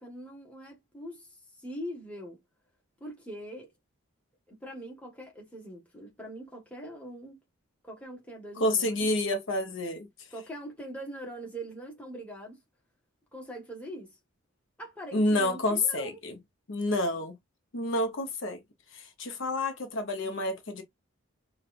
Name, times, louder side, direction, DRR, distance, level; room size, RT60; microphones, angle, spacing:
voice 1, 0.0-2.4 3.0-3.7 4.5-7.4 7.8-9.1 10.3-12.6 13.3-14.2 14.8-16.2, right 1 dB, 5° left, 1.2 m, -42 dB
voice 2, 8.6-10.1 15.1-16.3 16.7-17.4 17.7-18.6 18.9-20.8, left 2 dB, 60° left, 0.8 m, -29 dB
5.2 x 2.3 x 2.4 m
head